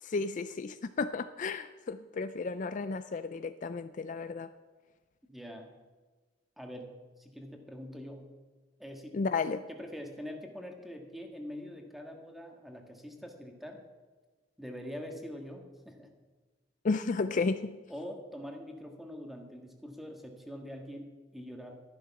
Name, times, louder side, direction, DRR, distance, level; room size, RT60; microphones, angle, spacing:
voice 1, 0.0-4.5 9.1-9.7 16.8-17.8, left 4 dB, 45° left, 11 dB, 0.4 m, -33 dB
voice 2, 5.3-5.7 6.6-8.3 8.8-9.2 9.7-13.8 14.6-16.1 17.9-21.8, equal, ahead, 2 dB, 1.6 m, -44 dB
12.5 x 11.5 x 5.9 m, 1.3 s
head